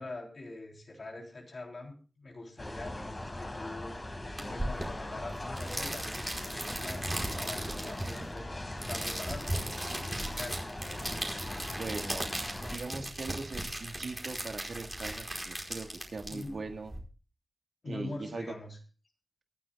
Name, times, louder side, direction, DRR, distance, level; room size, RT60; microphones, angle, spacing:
voice 1, 0.0-3.9 4.5-6.1 6.4-10.7 16.2-16.5 17.8-18.8, left 2 dB, 60° left, 1 dB, 3.6 m, -44 dB
sound 1, 2.6-12.8, left 1 dB, 30° left, 4.0 m, -40 dB
sound 2, 4.4-17.0, right 1 dB, 20° right, 4.8 m, -37 dB
voice 2, 11.5-16.9 17.9-18.5, right 3 dB, 80° right, 5 dB, 1.8 m, -41 dB
24.5 x 9.8 x 2.5 m, 0.35 s
wide cardioid pair, 75°, 0 cm